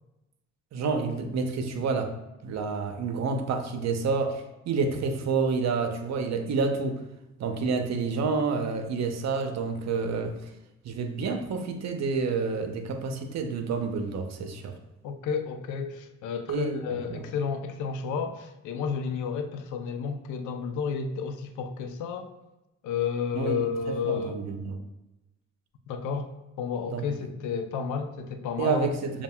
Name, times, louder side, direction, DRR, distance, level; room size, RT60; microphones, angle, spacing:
voice 1, 0.7-2.2 2.4-7.0 7.4-10.4 10.8-14.8 16.5-17.3 23.3-24.8 26.9-27.3 28.6-29.2, right 4 dB, 60° right, 6 dB, 0.7 m, -29 dB
voice 2, 15.0-22.3 22.8-24.4 25.9-26.3 26.6-28.9, left 6 dB, 80° left, 7 dB, 0.6 m, -31 dB
7.1 x 2.4 x 2.2 m, 0.98 s
cardioid pair, 90°, 30 cm